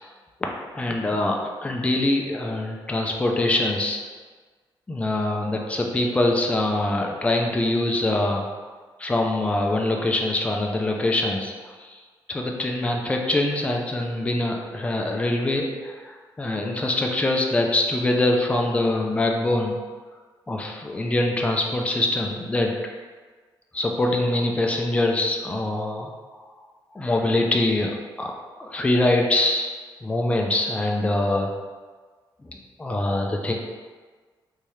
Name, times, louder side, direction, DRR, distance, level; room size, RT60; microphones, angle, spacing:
voice 1, 0.7-4.0 4.9-8.5 9.0-11.5 11.8-12.0 12.3-19.8 20.5-22.7 23.7-26.1 26.9-28.3 28.6-29.7 30.0-31.5 32.8-33.5, left 2 dB, 15° left, 1 dB, 0.4 m, -24 dB
3.4 x 2.7 x 3.1 m, 1.4 s
cardioid pair, 115°, 9 cm